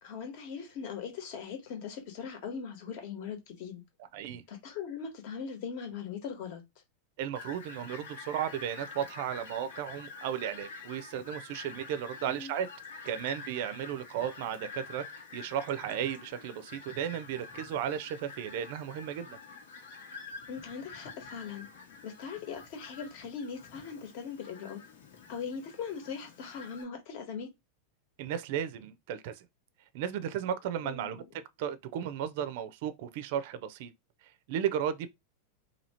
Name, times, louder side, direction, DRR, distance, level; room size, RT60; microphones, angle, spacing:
voice 1, 0.0-3.8 4.5-6.6 12.2-12.5 20.5-21.7 22.0-24.8 25.3-27.5 30.8-31.2, left 6 dB, 40° left, 1.2 m, -40 dB
voice 2, 7.2-12.7 13.0-15.0 15.3-19.4 28.2-29.4 29.9-33.9 34.5-35.1, right 9 dB, 45° right, 0.4 m, -34 dB
Fowl, 7.3-26.8, left 4 dB, 85° left, 1.5 m, -48 dB
2.8 x 2.7 x 4.2 m
supercardioid pair, 175°, 0 cm